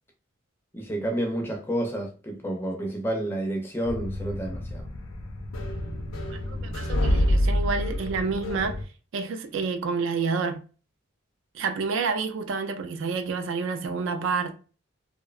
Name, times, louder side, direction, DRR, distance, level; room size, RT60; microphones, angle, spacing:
voice 1, 0.7-4.9, right 1 dB, 10° left, 0.4 m, -30 dB
sound 1, 3.8-8.8, left 1 dB, 75° left, 0.5 m, -27 dB
voice 2, 6.3-8.8 9.1-10.6 11.5-14.5, right 4 dB, 65° right, 0.3 m, -29 dB
2.6 x 2.1 x 2.3 m
head